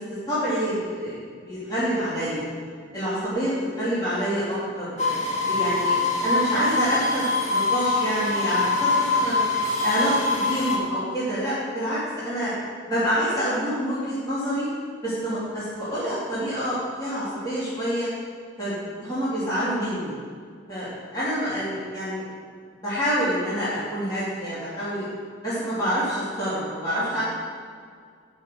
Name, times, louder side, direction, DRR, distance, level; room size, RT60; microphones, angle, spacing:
voice 1, 0.0-2.4 2.9-5.1 5.5-9.4 9.8-12.5 12.9-14.7 15.0-18.1 18.6-20.1 20.7-22.2 22.8-25.1 25.4-27.2, equal, 20° left, -12 dB, 2.8 m, -27 dB
sound 1, 5.0-10.8, left 3 dB, 40° left, 1.5 m, -24 dB
9.0 x 5.6 x 6.8 m, 2.1 s
head